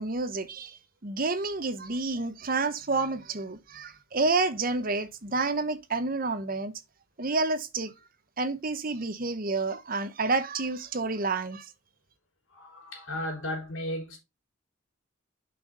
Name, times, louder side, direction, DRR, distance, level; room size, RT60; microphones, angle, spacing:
voice 1, 0.0-6.7 7.2-7.9 8.4-11.7, right 3 dB, 45° right, 0.8 m, -29 dB
voice 2, 12.5-14.2, left 1 dB, 85° left, 4.0 m, -35 dB
6.3 x 5.7 x 3.9 m
head